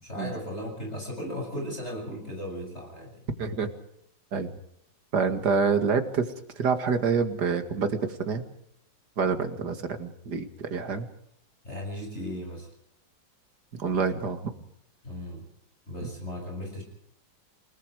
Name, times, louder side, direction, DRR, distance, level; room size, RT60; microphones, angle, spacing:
voice 1, 0.0-3.2 11.6-12.7 15.0-15.4 15.9-16.8, left 1 dB, 30° left, 1 dB, 7.7 m, -36 dB
voice 2, 3.4-3.7 4.3-4.5 5.1-8.4 9.2-11.1 13.7-14.5, right 5 dB, 55° right, 8 dB, 2.6 m, -27 dB
29.0 x 19.5 x 4.9 m, 0.72 s
omnidirectional pair, 2.1 m